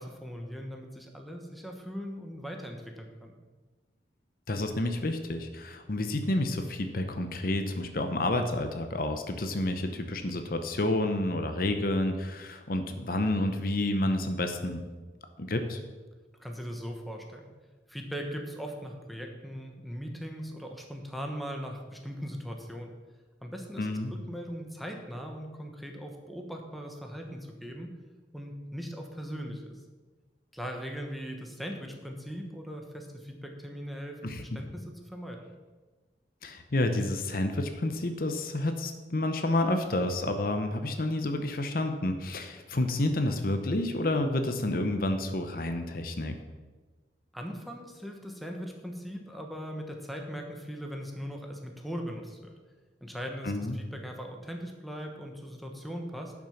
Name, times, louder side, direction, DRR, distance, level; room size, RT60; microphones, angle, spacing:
voice 1, 0.0-3.4 16.4-17.5 17.9-22.9 23.4-27.9 28.3-29.8 30.5-35.4 47.3-52.5 53.0-56.3, equal, ahead, 2 dB, 1.1 m, -39 dB
voice 2, 4.5-14.8 15.4-15.8 23.8-24.1 34.2-34.4 36.4-46.4 53.4-53.8, left 1 dB, 55° left, 7 dB, 0.8 m, -29 dB
11.0 x 6.2 x 5.8 m, 1.3 s
head